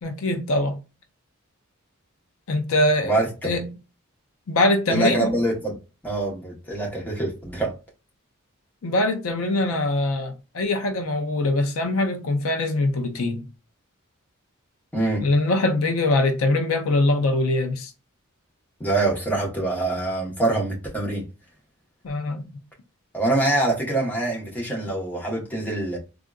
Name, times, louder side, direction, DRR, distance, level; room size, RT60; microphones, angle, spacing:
voice 1, 0.0-0.8 2.5-3.7 4.5-5.3 8.8-13.4 15.2-17.9 22.0-22.5, left 2 dB, 70° left, 0.5 m, -23 dB
voice 2, 3.0-3.5 4.9-5.8 6.0-7.8 14.9-15.3 18.8-21.3 23.1-26.0, right 2 dB, 10° left, 1.0 m, -24 dB
3.6 x 2.4 x 2.3 m
head